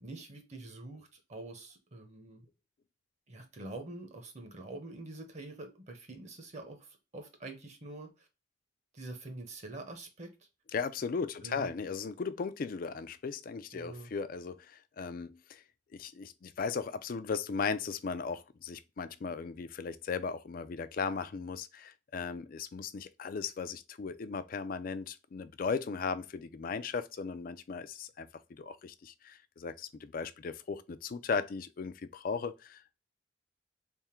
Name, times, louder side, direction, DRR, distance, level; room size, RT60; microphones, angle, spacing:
voice 1, 0.0-2.5 3.3-8.3 8.9-10.5 11.4-11.7 13.7-14.1, right 2 dB, 40° right, 0.8 m, -46 dB
voice 2, 10.7-15.6 15.9-33.0, left 5 dB, 50° left, 0.4 m, -37 dB
3.5 x 2.1 x 4.3 m
head